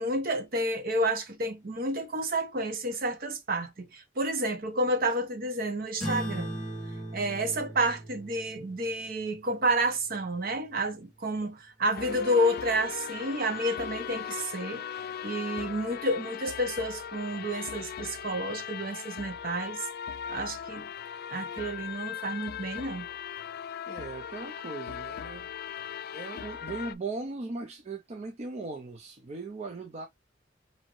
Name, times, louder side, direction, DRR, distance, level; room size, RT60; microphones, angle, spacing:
voice 1, 0.0-6.6 7.1-14.8 15.2-19.9 20.3-20.9 21.3-23.0, right 1 dB, 55° right, 0.9 m, -30 dB
sound 1, 6.0-10.8, equal, ahead, 2.3 m, -39 dB
sound 2, 11.9-26.9, left 8 dB, 55° left, 0.3 m, -39 dB
voice 2, 23.9-25.5 26.1-30.1, right 3 dB, 35° right, 0.5 m, -38 dB
5.1 x 2.7 x 3.1 m
head